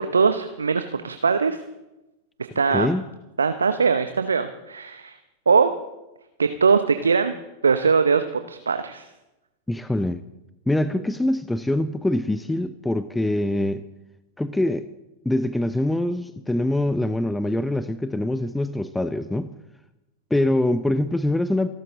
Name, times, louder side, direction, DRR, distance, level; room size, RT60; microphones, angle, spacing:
voice 1, 0.0-1.6 2.5-2.9 3.4-5.2 5.5-5.7 6.4-7.3 7.6-9.1, right 5 dB, 75° right, 9 dB, 0.8 m, -21 dB
voice 2, 2.7-3.0 9.7-10.2 10.7-13.8 14.4-14.9 15.2-19.5 20.3-21.7, left 1 dB, 5° left, 14 dB, 0.6 m, -24 dB
27.5 x 12.0 x 3.9 m, 0.97 s
figure-of-eight pair, 90°, 0 cm